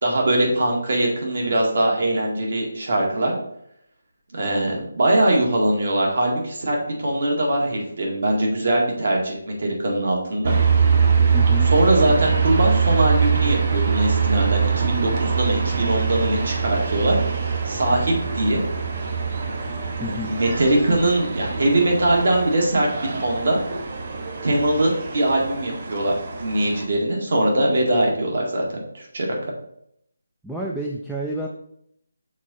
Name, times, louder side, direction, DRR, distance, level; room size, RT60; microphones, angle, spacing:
voice 1, 0.0-3.3 4.3-10.6 11.7-17.2 17.7-18.6 20.1-22.9 23.1-23.6 24.4-29.5, right 1 dB, 60° right, -1 dB, 1.8 m, -21 dB
sound 1, 10.4-26.8, right 6 dB, 35° right, 0.8 m, -23 dB
voice 2, 11.3-11.7 20.0-20.3 30.4-31.5, equal, ahead, -3 dB, 0.3 m, -29 dB
6.2 x 3.6 x 4.1 m, 0.73 s
figure-of-eight pair, 170°, 0 cm